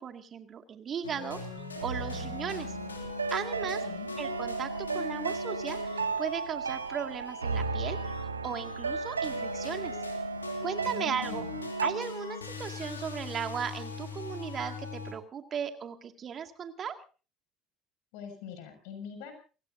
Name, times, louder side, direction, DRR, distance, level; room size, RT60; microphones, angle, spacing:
voice 1, 0.0-2.8 3.3-3.8 4.2-10.0 10.6-11.4 11.8-17.0, right 7 dB, 40° right, 7 dB, 2.2 m, -37 dB
sound 1, 1.0-15.1, left 3 dB, 90° left, 2.9 m, -40 dB
sound 2, 1.8-11.9, right 4 dB, 90° right, 0.8 m, -35 dB
voice 2, 3.6-4.1 10.9-11.5 18.1-19.3, left 7 dB, 65° left, 7 dB, 6.3 m, -43 dB
29.5 x 17.0 x 2.7 m, 0.36 s
figure-of-eight pair, 60°, 0 cm